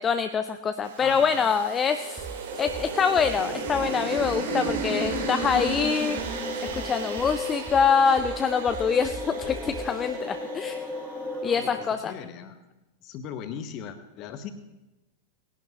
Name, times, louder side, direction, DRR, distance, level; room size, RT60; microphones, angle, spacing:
voice 1, 0.0-2.2 2.6-6.2 6.7-10.9 11.4-12.1, left 6 dB, 20° left, 9 dB, 0.5 m, -25 dB
sound 1, 0.8-11.2, right 4 dB, 60° right, 2.5 m, -35 dB
voice 2, 1.0-1.5 11.5-12.6 13.0-14.5, left 7 dB, 40° left, 10 dB, 1.1 m, -39 dB
sound 2, 2.2-10.2, right 4 dB, 20° right, 0.9 m, -42 dB
sound 3, 2.5-11.9, left 2 dB, 5° left, 1.6 m, -36 dB
19.0 x 11.0 x 3.0 m, 0.99 s
figure-of-eight pair, 90°, 0 cm